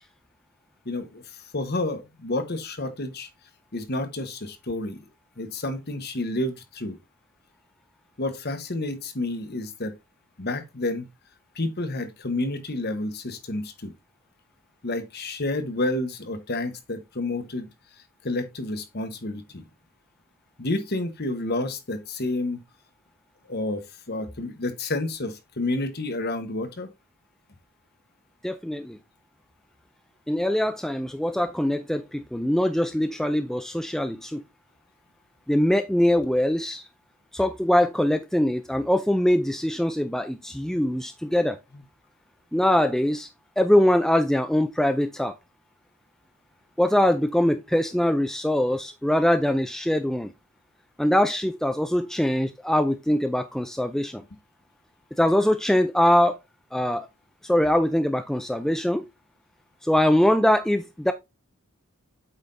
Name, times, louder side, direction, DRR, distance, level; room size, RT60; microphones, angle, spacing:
voice 1, 0.8-3.3 3.7-5.0 5.4-7.0 8.2-9.9 10.4-11.1 11.5-13.9 14.8-17.7 18.2-19.6 20.6-22.6 23.5-23.8 24.1-26.9 41.7-41.8, left 2 dB, 45° left, 1.2 m, -30 dB
voice 2, 28.4-29.0 30.3-34.4 35.5-36.8 37.3-41.6 42.5-43.3 43.6-45.3 46.8-50.3 51.0-54.2 55.2-56.4 56.7-57.1 57.4-59.1 59.8-61.1, left 1 dB, ahead, 0.3 m, -22 dB
8.1 x 5.7 x 2.6 m
head